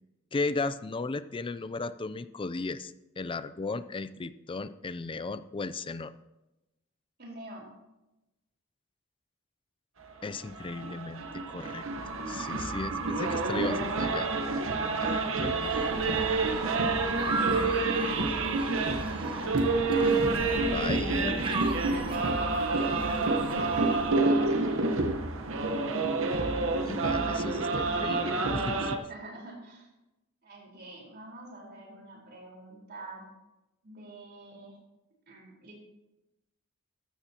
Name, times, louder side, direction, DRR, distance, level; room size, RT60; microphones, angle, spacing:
voice 1, 0.3-6.1 10.2-11.8 12.3-14.3 15.0-15.7 20.7-21.4 26.9-29.1, left 3 dB, 25° left, 14 dB, 0.4 m, -35 dB
voice 2, 7.2-7.7 14.9-15.7 16.0-17.6 18.3-19.3 19.6-20.9 21.8-23.2 24.0-25.5 27.2-27.5 29.1-29.9 30.4-33.3 33.8-34.8 35.3-35.8, right 2 dB, 50° right, -2 dB, 4.2 m, -46 dB
sound 1, 10.3-29.0, right 3 dB, 65° right, 1.1 m, -28 dB
sound 2, 15.6-24.2, right 3 dB, 25° right, 1.3 m, -38 dB
14.0 x 13.0 x 2.9 m, 0.97 s
head